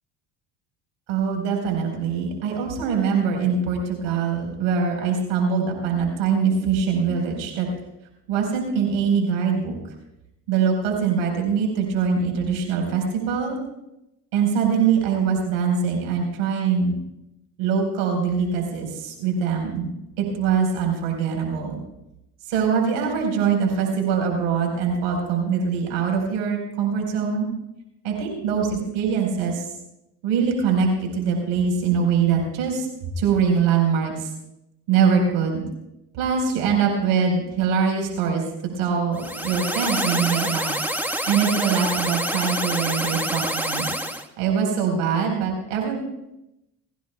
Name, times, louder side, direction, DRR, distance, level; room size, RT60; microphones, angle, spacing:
voice 1, 1.1-7.7 8.3-9.8 10.5-13.6 14.3-16.9 17.6-21.8 22.5-27.5 28.0-29.7 30.2-32.9 33.2-34.3 34.9-35.6 36.1-38.4 38.7-40.7 41.3-43.8 44.4-46.0, right 6 dB, 75° right, 1 dB, 4.5 m, -23 dB
sound 1, 39.1-44.2, equal, 5° right, 1.3 m, -27 dB
22.0 x 16.0 x 2.3 m, 0.88 s
supercardioid pair, 70°, 48 cm